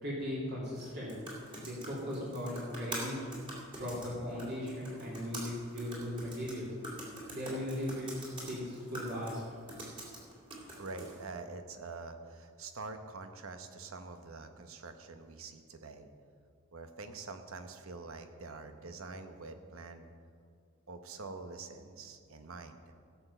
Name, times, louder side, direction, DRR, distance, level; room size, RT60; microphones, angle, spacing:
voice 1, 0.0-1.2 1.6-3.2 3.8-6.7 7.3-9.4 10.0-10.1, left 1 dB, 50° right, -6 dB, 2.7 m, -38 dB
sound 1, 0.7-11.2, right 1 dB, 25° right, 2.5 m, -46 dB
voice 2, 10.8-16.1 16.7-20.1 20.9-22.9, right 3 dB, 80° right, 7 dB, 1.0 m, -45 dB
16.0 x 7.1 x 5.6 m, 2.2 s
head